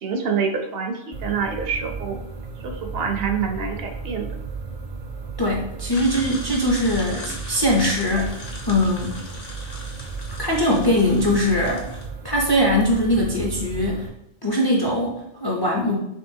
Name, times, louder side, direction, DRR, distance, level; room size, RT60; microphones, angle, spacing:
voice 1, 0.0-2.2 2.6-4.3, right 6 dB, 65° right, 4 dB, 0.8 m, -26 dB
sound 1, 1.1-14.1, right 5 dB, 45° right, 0.4 m, -34 dB
voice 2, 5.4-9.2 10.4-12.0 12.2-14.1 14.4-16.0, left 1 dB, 30° left, -2 dB, 0.4 m, -21 dB
sound 2, 5.9-12.1, left 2 dB, 60° left, 1.1 m, -39 dB
5.4 x 2.8 x 2.7 m, 0.82 s
omnidirectional pair, 1.1 m